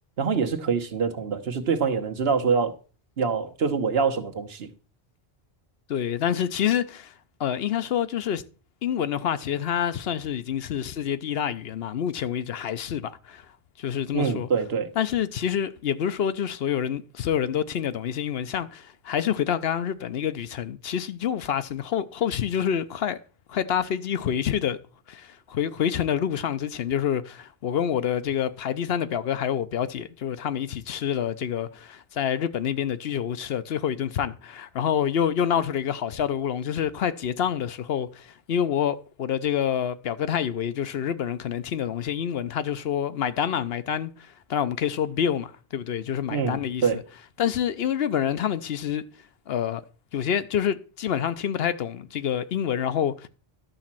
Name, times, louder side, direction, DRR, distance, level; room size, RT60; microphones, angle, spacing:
voice 1, 0.2-2.7 3.2-4.7 14.1-14.9 46.3-47.0, right 5 dB, 75° right, 1.3 m, -25 dB
voice 2, 5.9-7.1 7.4-8.4 8.8-13.4 13.8-14.5 15.0-23.2 23.5-24.8 25.1-44.1 44.5-46.8 47.4-49.0 49.5-49.8 50.1-53.3, left 9 dB, 75° left, 0.9 m, -27 dB
11.5 x 4.2 x 7.4 m
omnidirectional pair, 1.0 m